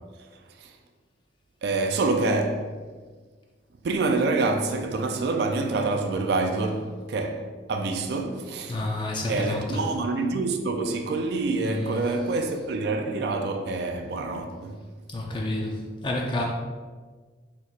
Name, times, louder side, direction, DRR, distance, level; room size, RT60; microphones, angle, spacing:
voice 1, 1.6-2.7 3.8-8.8 9.3-14.8, right 3 dB, 60° right, 0.3 m, -26 dB
voice 2, 8.7-9.8 11.6-12.0 15.1-16.4, left 2 dB, 25° left, 0.4 m, -29 dB
4.4 x 4.0 x 2.4 m
head